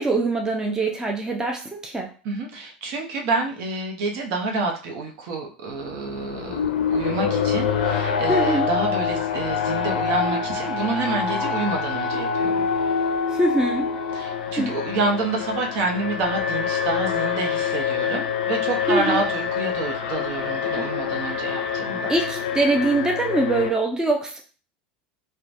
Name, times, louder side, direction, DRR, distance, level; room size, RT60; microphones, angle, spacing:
voice 1, 0.0-2.1 8.3-8.7 13.3-13.9 14.6-14.7 18.9-19.2 22.1-24.4, right 2 dB, 15° right, 1 dB, 0.5 m, -23 dB
voice 2, 2.2-12.6 14.1-22.1, right 3 dB, 60° right, 2 dB, 0.7 m, -28 dB
Alarm, 5.8-23.7, left 6 dB, 75° left, 0.4 m, -26 dB
3.0 x 2.1 x 2.6 m, 0.38 s
hypercardioid pair, 90°, 5 cm